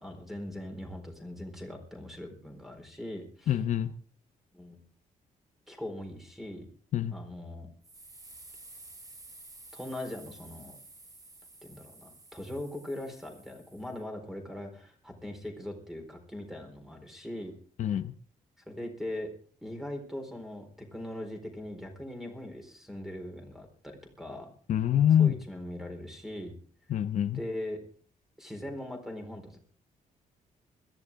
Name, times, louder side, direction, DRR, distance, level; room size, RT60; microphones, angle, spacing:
voice 1, 0.0-3.6 4.5-4.8 5.7-6.7 7.1-7.7 9.7-10.8 11.6-17.6 17.9-18.0 18.7-19.3 19.6-24.5 25.2-26.5 27.3-27.8 28.4-29.6, left 1 dB, ahead, 4 dB, 4.3 m, -40 dB
voice 2, 3.5-3.9 6.9-7.1 17.8-18.1 24.7-25.3 26.9-27.4, left 10 dB, 60° left, 10 dB, 0.8 m, -25 dB
sound 1, 7.8-14.0, right 2 dB, 25° right, 5.1 m, -52 dB
21.5 x 14.5 x 3.7 m, 0.42 s
cardioid pair, 160°, 14 cm